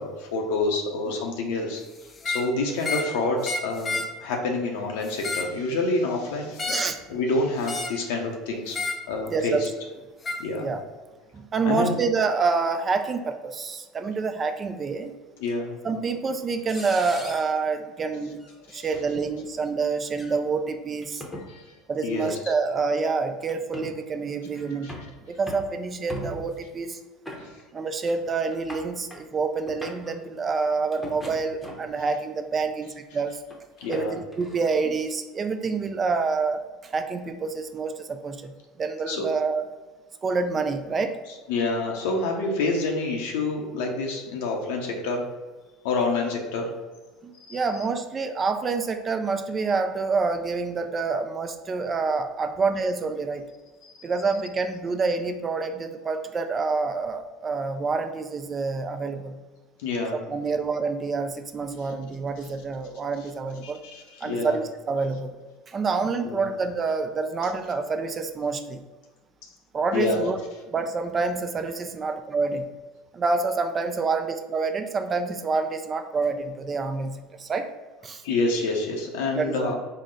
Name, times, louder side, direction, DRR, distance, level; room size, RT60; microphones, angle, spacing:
voice 1, 0.0-1.8 2.2-6.8 7.1-8.8 9.1-9.7 10.4-10.7 11.6-12.0 15.4-15.7 18.7-18.9 21.5-21.7 22.0-22.3 24.8-24.9 27.4-27.5 33.8-34.2 39.1-39.2 41.5-45.3 45.8-46.7 47.4-47.6 53.8-54.0 59.8-60.2 63.6-64.6 66.2-66.5 69.9-70.2 78.2-79.7, left 3 dB, 80° left, 0 dB, 0.6 m, -27 dB
sound 1, 2.1-2.5 2.8-3.1 3.4-4.1 5.0-5.6 6.6-7.0 7.7-8.0 8.7-9.0 10.2-10.4, left 3 dB, 25° left, 0.5 m, -30 dB
voice 2, 9.3-9.7 10.6-10.8 11.3-15.1 15.8-18.4 18.7-21.2 21.9-27.0 27.7-33.4 33.9-39.6 40.2-41.2 47.2-53.5 54.0-59.4 60.3-63.8 64.2-65.4 65.7-68.8 69.7-70.4 70.7-72.7 73.1-77.7 78.0-78.2 79.3-79.7, right 4 dB, 30° right, 7 dB, 0.4 m, -27 dB
sound 2, 15.5-15.6 16.7-17.5 18.4-18.6 18.9-19.1 20.1-20.3 21.0-21.5 22.7-22.8 23.5-23.9 24.5-25.1 25.5-25.7 26.1-26.6 27.3-27.8 28.1-28.2 28.5-29.2 29.6-30.1 30.9-32.0 32.6-32.9 33.5-34.8, equal, 10° left, 0.8 m, -40 dB
3.8 x 2.0 x 3.8 m, 1.3 s
supercardioid pair, 100°, 0 cm